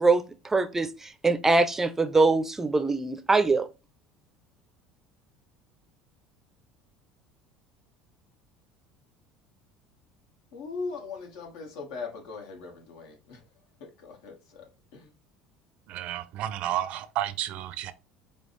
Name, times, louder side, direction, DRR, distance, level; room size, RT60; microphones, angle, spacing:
voice 1, 0.0-3.7, right 3 dB, 15° right, 0.5 m, -23 dB
voice 2, 10.5-13.4 13.8-15.1, left 4 dB, 80° left, 1.5 m, -40 dB
voice 3, 15.9-17.9, right 12 dB, 60° right, 0.5 m, -31 dB
5.0 x 2.4 x 3.2 m
supercardioid pair, 110°, 2 cm